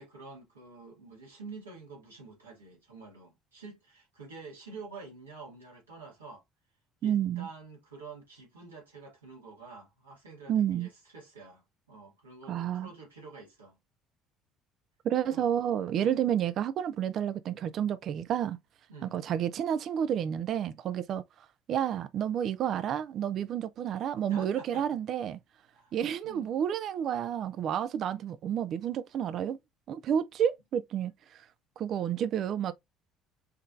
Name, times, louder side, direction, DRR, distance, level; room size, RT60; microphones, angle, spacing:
voice 1, 0.0-6.4 7.0-13.8 15.3-15.5 15.9-16.2 18.9-19.2 24.3-25.0 25.7-25.9 26.2-26.5, right 4 dB, 85° right, 2.0 m, -48 dB
voice 2, 7.0-7.5 10.5-10.9 12.5-12.9 15.0-18.6 19.0-21.2 21.7-25.4 25.9-29.6 29.9-31.1 31.8-32.7, right 9 dB, 50° right, 0.5 m, -30 dB
5.7 x 3.2 x 2.4 m
figure-of-eight pair, 55°, 0 cm